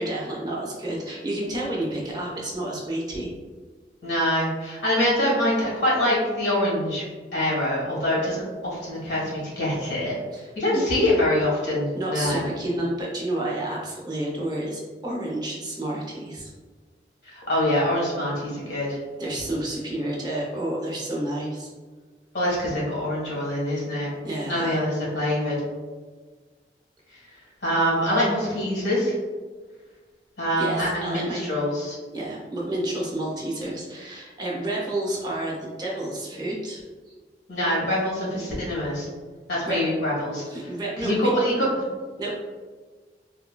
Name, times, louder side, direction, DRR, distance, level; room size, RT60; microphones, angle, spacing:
voice 1, 0.0-3.3 10.3-10.9 11.9-16.5 19.2-21.7 24.2-24.9 30.6-31.4 32.1-36.8 37.1-37.2 39.6-39.8 40.5-41.1 42.2-42.4, right 1 dB, 25° right, -4 dB, 0.6 m, -30 dB
voice 2, 4.0-7.0 7.3-10.2 10.5-12.4 17.2-19.0 22.3-24.1 24.4-25.6 27.6-29.1 30.4-32.0 37.5-39.1 39.5-40.7 41.0-41.8, left 1 dB, 90° left, -6 dB, 1.4 m, -24 dB
3.8 x 2.1 x 2.2 m, 1.4 s
head